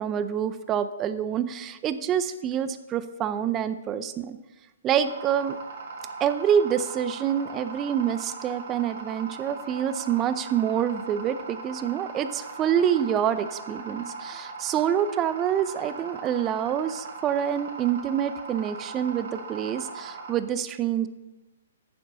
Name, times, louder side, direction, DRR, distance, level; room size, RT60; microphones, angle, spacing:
voice 1, 0.0-4.4 4.8-5.6 6.2-21.1, right 9 dB, 25° right, 12 dB, 0.5 m, -26 dB
sound 1, 5.0-20.3, right 4 dB, 60° right, 1.5 m, -39 dB
9.2 x 6.9 x 4.1 m, 1.1 s
hypercardioid pair, 135°, 0 cm